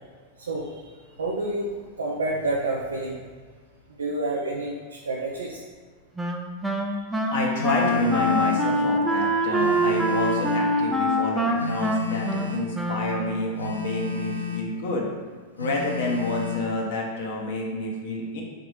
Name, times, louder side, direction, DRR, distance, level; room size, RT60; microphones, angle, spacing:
voice 1, 0.4-0.7 1.2-1.7 2.0-3.2 4.0-5.6 6.7-6.8, right 2 dB, 70° right, -4 dB, 0.5 m, -28 dB
Wind instrument woodwind instrument, 6.2-13.6, equal, 5° right, 0.4 m, -25 dB
voice 2, 7.3-15.1 15.6-18.4, left 2 dB, 55° left, -1 dB, 0.8 m, -28 dB
Telephone, 7.6-8.7 9.6-10.7 11.6-12.7 13.6-14.7 15.6-16.7, left 5 dB, 85° left, 0.4 m, -33 dB
4.0 x 2.6 x 4.4 m, 1.5 s
figure-of-eight pair, 90°, 0 cm